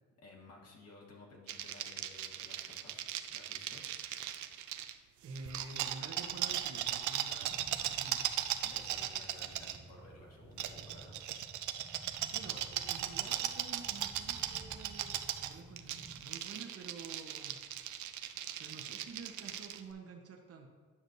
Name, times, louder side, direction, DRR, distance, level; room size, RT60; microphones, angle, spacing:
voice 1, 0.2-3.0 3.3-3.8 8.6-11.2, left 2 dB, 55° left, -1 dB, 1.8 m, -56 dB
Shaking Dice, 1.5-4.9 5.4-9.8 10.6-19.8, right 11 dB, 75° right, 0.5 m, -38 dB
voice 2, 5.2-8.3 12.3-17.6 18.6-20.7, right 4 dB, 50° right, 2 dB, 1.0 m, -49 dB
sound 1, 7.5-16.2, right 2 dB, 10° right, 0.6 m, -54 dB
9.7 x 6.1 x 2.7 m, 1.5 s
cardioid pair, 90°, 30 cm